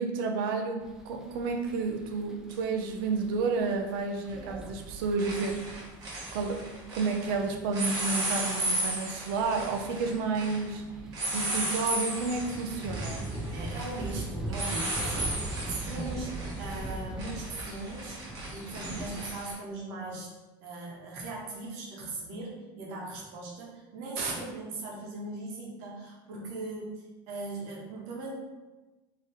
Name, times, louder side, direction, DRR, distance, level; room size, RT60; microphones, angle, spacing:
voice 1, 0.0-5.6 6.3-6.7 6.9-10.8 11.3-13.3, right 4 dB, 90° right, 4 dB, 0.7 m, -31 dB
sound 1, 0.8-19.3, right 2 dB, 5° right, 0.3 m, -41 dB
sound 2, 2.5-2.6 4.3-4.6 4.9-7.3 7.7-19.5, right 1 dB, 30° right, 1.3 m, -35 dB
voice 2, 13.4-18.2 18.5-20.3 20.6-28.3, right 3 dB, 65° right, -2 dB, 1.3 m, -39 dB
4.1 x 3.2 x 4.0 m, 1.1 s
cardioid pair, 180°, 11 cm